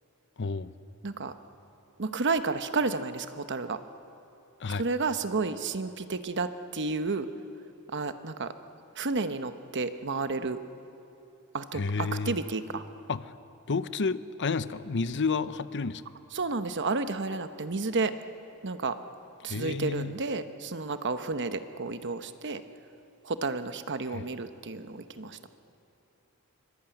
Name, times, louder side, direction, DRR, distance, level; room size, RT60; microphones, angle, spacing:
voice 1, 0.4-0.7 4.6-4.8 11.7-12.4 13.1-13.3 13.7-16.0 19.4-20.2 24.1-24.2, left 4 dB, 55° left, 0.8 m, -30 dB
voice 2, 2.0-3.8 4.8-7.3 7.9-8.5 9.0-10.6 11.5-12.8 16.3-18.1 18.6-18.9 19.4-22.6 23.2-25.4, right 3 dB, 55° right, 1.0 m, -31 dB
24.5 x 23.5 x 9.1 m
head